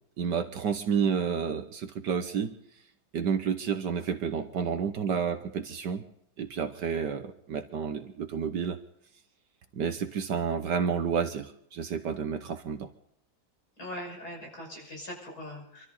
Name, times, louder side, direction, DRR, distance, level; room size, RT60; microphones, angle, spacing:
voice 1, 0.2-2.6 3.1-6.0 6.4-8.8 9.7-12.9, right 7 dB, 65° right, 7 dB, 1.6 m, -30 dB
voice 2, 13.8-15.8, left 1 dB, 50° left, -1 dB, 6.5 m, -41 dB
26.0 x 13.5 x 4.0 m, 0.72 s
omnidirectional pair, 2.1 m